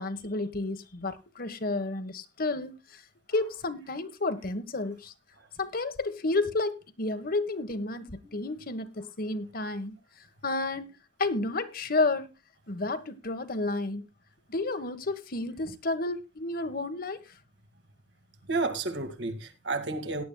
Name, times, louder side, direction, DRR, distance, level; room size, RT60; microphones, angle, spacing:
voice 1, 0.0-2.8 3.3-5.1 5.6-10.0 10.4-12.3 12.7-14.0 14.5-17.2, left 2 dB, 55° left, 1.3 m, -31 dB
voice 2, 18.5-20.2, right 3 dB, 75° right, 2.1 m, -31 dB
18.0 x 10.5 x 2.2 m
head